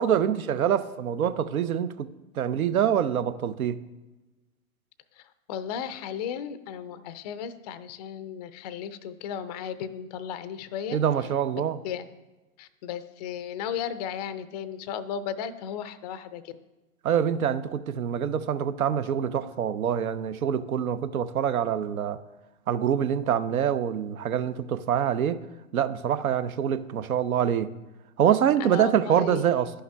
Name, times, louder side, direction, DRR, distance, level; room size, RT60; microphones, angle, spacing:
voice 1, 0.0-2.1 2.4-3.8 10.9-11.8 17.0-22.2 22.7-25.4 25.7-27.7 28.2-29.7, right 9 dB, 80° right, 13 dB, 0.6 m, -25 dB
voice 2, 5.2-11.0 11.8-12.1 12.6-16.5 28.6-29.7, left 8 dB, 30° left, 13 dB, 0.4 m, -35 dB
11.0 x 5.6 x 3.4 m, 1.1 s
hypercardioid pair, 115°, 42 cm